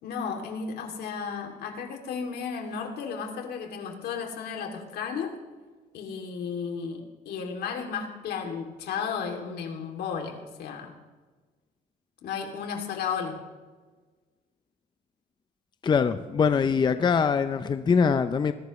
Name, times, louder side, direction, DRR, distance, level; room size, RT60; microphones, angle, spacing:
voice 1, 0.0-5.3 5.9-10.9 12.2-13.4, left 6 dB, 75° left, 3 dB, 2.8 m, -34 dB
voice 2, 15.8-18.5, left 6 dB, 25° left, 10 dB, 0.6 m, -23 dB
21.0 x 17.0 x 3.2 m, 1.3 s
cardioid pair, 125°, 17 cm